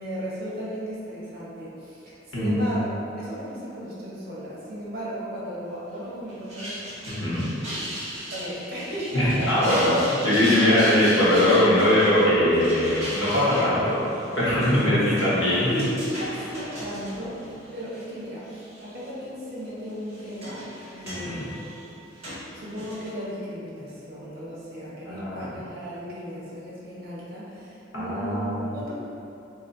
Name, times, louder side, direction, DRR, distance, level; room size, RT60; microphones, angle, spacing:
voice 1, 0.0-6.8 8.3-9.6 10.4-11.0 14.9-15.1 15.6-20.6 20.9-22.1 22.5-28.9, equal, 55° right, -8 dB, 1.1 m, -35 dB
voice 2, 2.3-2.8 7.1-7.5 9.1-9.9 10.2-14.0 14.3-15.7 21.1-21.5 25.1-25.5 27.9-28.6, left 1 dB, 80° left, -9 dB, 1.2 m, -21 dB
sound 1, 6.3-18.1 18.5-19.1 19.9-23.1, equal, 35° right, 1.5 m, -37 dB
3.1 x 2.8 x 3.9 m, 2.8 s
head